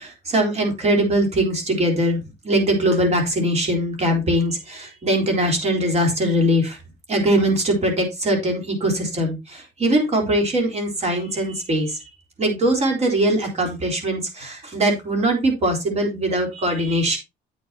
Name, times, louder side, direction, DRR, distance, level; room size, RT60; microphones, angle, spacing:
voice 1, 0.0-6.8 7.1-12.0 12.4-17.2, right 1 dB, 40° right, 2 dB, 3.8 m, -21 dB
9.0 x 8.7 x 2.8 m, 0.24 s
cardioid pair, 110°, 17 cm